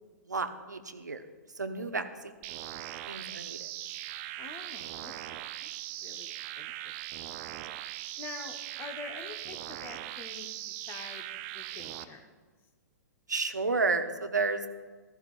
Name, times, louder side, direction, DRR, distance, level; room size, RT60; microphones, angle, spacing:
voice 1, 0.3-1.2 1.6-2.3 3.1-3.7 13.3-14.6, right 4 dB, 80° right, 8 dB, 0.9 m, -31 dB
sound 1, 2.4-12.0, right 14 dB, 30° right, 0.5 m, -40 dB
voice 2, 4.4-5.7 6.0-6.9 7.2-7.5 8.2-12.3, left 4 dB, 25° left, 6 dB, 1.2 m, -47 dB
15.5 x 14.0 x 2.5 m, 1.4 s
figure-of-eight pair, 115°, 9 cm